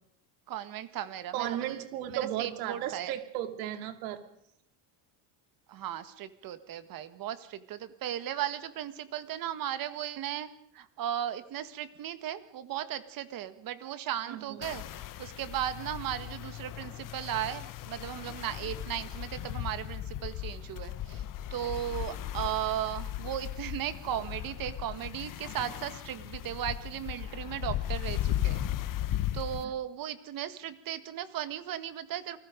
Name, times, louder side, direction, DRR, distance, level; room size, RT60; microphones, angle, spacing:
voice 1, 0.5-1.8 2.1-3.1 5.7-10.5 10.7-21.2 21.5-28.6 29.3-32.4, right 11 dB, 40° right, 11 dB, 1.7 m, -36 dB
voice 2, 1.3-4.2 14.3-14.6 29.6-29.7, right 12 dB, 85° right, 8 dB, 2.7 m, -35 dB
sound 1, 14.6-29.6, left 12 dB, 40° left, 1.2 m, -36 dB
29.0 x 20.5 x 5.2 m, 0.73 s
cardioid pair, 145°, 50 cm